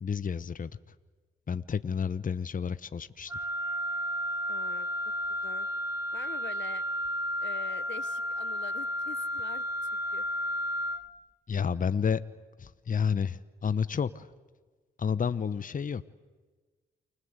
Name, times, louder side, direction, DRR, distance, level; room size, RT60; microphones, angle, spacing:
voice 1, 0.0-0.7 1.5-3.3 11.5-12.2 12.6-14.3 15.0-16.0, left 6 dB, 40° left, 14 dB, 1.0 m, -30 dB
Wind instrument woodwind instrument, 3.3-11.1, equal, 15° right, 2.2 m, -32 dB
voice 2, 4.5-4.9 5.4-5.7 6.1-6.8 7.4-10.2, left 9 dB, 65° left, 15 dB, 1.1 m, -45 dB
29.0 x 24.0 x 8.1 m, 1.4 s
supercardioid pair, 55°, 21 cm